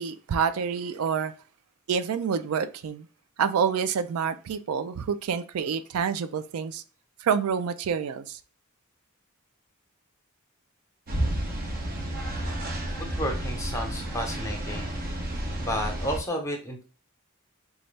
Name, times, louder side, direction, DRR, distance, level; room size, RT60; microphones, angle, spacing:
voice 1, 0.0-1.3 1.9-3.1 3.4-6.8 7.2-8.4, right 6 dB, 90° right, 0.4 m, -27 dB
sound 1, 11.1-16.2, right 1 dB, 45° right, 0.7 m, -31 dB
voice 2, 13.1-14.9 15.6-16.8, equal, 15° left, 0.8 m, -31 dB
4.0 x 2.3 x 3.2 m
head